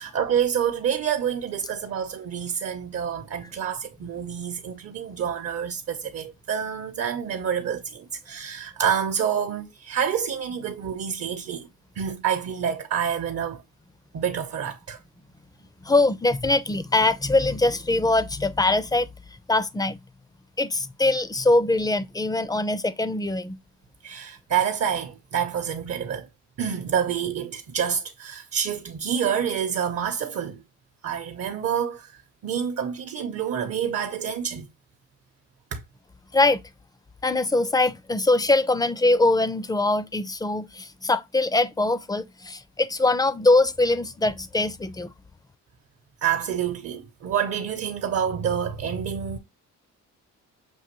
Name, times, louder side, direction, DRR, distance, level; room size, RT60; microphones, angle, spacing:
voice 1, 0.0-11.7 12.0-13.6 14.1-15.0 24.0-26.3 26.6-30.6 31.0-32.1 32.4-34.7 35.7-35.8 46.2-49.4, right 8 dB, 55° right, 0.8 m, -27 dB
voice 2, 15.9-19.1 19.5-20.0 20.6-23.6 36.3-36.6 37.2-45.1, left 2 dB, 15° left, 0.4 m, -22 dB
6.2 x 2.6 x 3.0 m
cardioid pair, 90°, 30 cm